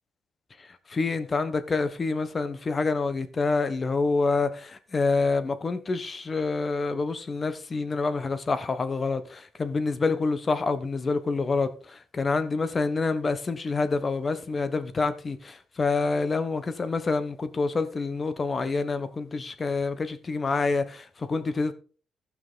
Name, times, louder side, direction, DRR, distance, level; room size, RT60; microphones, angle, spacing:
voice 1, 0.6-21.7, left 3 dB, 35° left, 1.2 m, -27 dB
15.0 x 5.8 x 3.9 m
cardioid pair, 90°, 0 cm